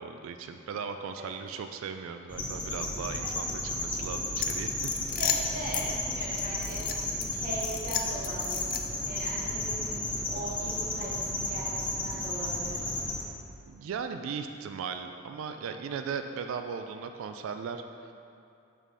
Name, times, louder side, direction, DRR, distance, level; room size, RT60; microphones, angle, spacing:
voice 1, 0.0-4.9 13.7-18.1, right 6 dB, 65° right, 7 dB, 0.3 m, -37 dB
sound 1, 2.3-13.2, left 1 dB, 20° left, 0.7 m, -33 dB
sound 2, 4.4-5.9 6.4-7.3 7.6-9.1, left 9 dB, 40° left, 0.3 m, -34 dB
voice 2, 5.2-8.7 9.0-10.0 10.3-12.8, right 1 dB, 40° right, -5 dB, 1.0 m, -39 dB
5.3 x 5.0 x 3.8 m, 2.5 s
head